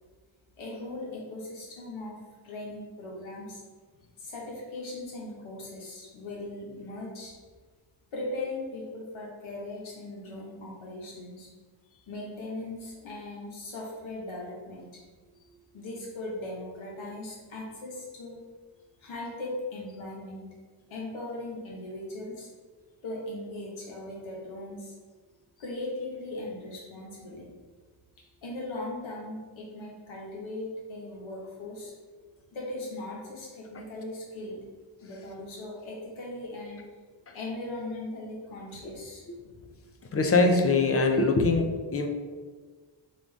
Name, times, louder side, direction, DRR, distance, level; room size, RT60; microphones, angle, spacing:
voice 1, 0.6-2.2 2.4-3.6 4.2-7.3 8.1-11.5 12.1-15.0 15.7-18.4 19.0-20.5 20.9-22.5 23.0-25.0 25.6-27.5 28.4-31.9 32.5-34.6 35.0-36.8 37.3-39.2, left 2 dB, 85° left, -3 dB, 1.3 m, -39 dB
voice 2, 40.0-42.1, left 3 dB, 30° left, 5 dB, 0.4 m, -23 dB
3.8 x 3.7 x 3.5 m, 1.4 s
wide cardioid pair, 140°, 46 cm